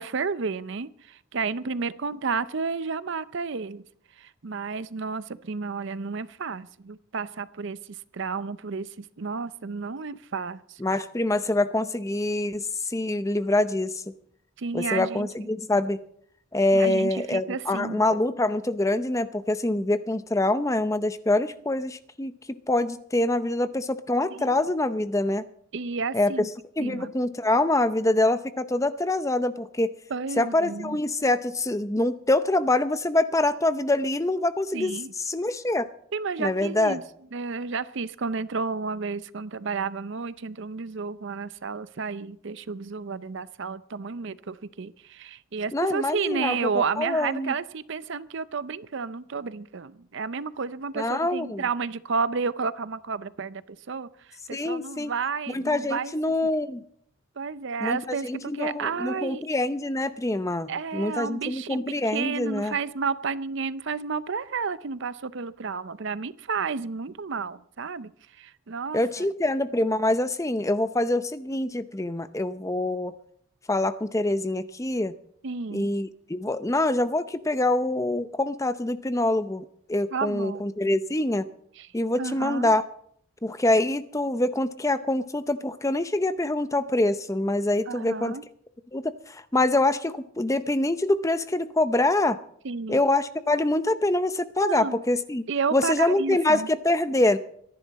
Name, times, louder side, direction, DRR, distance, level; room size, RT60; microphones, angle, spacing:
voice 1, 0.0-3.8 4.2-7.8 8.1-10.8 14.6-15.3 16.7-18.0 24.4-24.6 25.7-26.5 26.8-27.1 30.1-31.0 34.7-35.1 36.1-37.0 37.3-54.1 54.5-56.1 57.4-59.4 60.7-61.8 62.1-68.1 68.4-69.3 75.4-75.9 80.1-80.6 81.8-81.9 82.2-82.7 87.9-88.4 92.6-93.0 94.6-95.0 95.5-96.7, right 5 dB, 55° right, 16 dB, 0.5 m, -31 dB
voice 2, 10.8-14.0 14.7-16.0 16.5-25.4 26.1-26.5 26.8-29.9 30.4-34.9 35.2-35.9 36.4-37.0 45.7-46.6 47.0-47.5 51.0-51.6 54.5-55.1 55.5-56.8 57.8-58.0 58.2-62.7 68.9-73.1 73.7-75.1 75.7-81.5 81.9-82.8 83.4-88.4 88.9-92.4 92.9-95.4 95.7-97.4, left 2 dB, 15° left, 12 dB, 0.6 m, -25 dB
24.0 x 11.0 x 4.1 m, 0.65 s
head